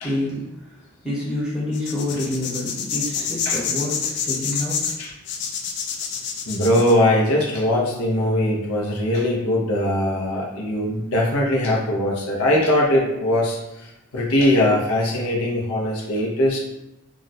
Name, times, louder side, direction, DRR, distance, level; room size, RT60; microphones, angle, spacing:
voice 1, 0.0-4.9, left 1 dB, 5° right, -7 dB, 0.7 m, -28 dB
sound 1, 1.7-6.9, left 7 dB, 50° left, 0.3 m, -27 dB
voice 2, 6.5-13.8 14.1-16.6, left 1 dB, 85° left, -3 dB, 0.7 m, -21 dB
2.4 x 2.1 x 4.0 m, 0.89 s
head